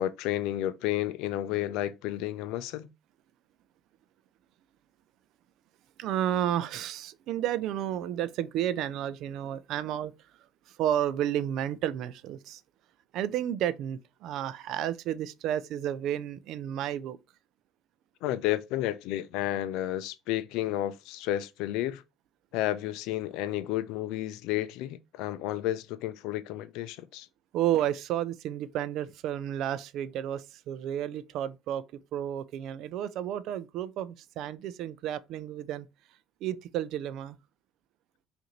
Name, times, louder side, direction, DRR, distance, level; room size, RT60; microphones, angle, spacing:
voice 1, 0.0-2.9 18.2-22.0 22.5-27.3, left 13 dB, 80° left, 0.4 m, -31 dB
voice 2, 6.0-10.1 10.7-12.6 13.1-17.2 27.5-31.8 32.1-35.9 36.4-37.4, right 11 dB, 70° right, 0.4 m, -31 dB
5.0 x 2.6 x 3.0 m
supercardioid pair, 95°, 0 cm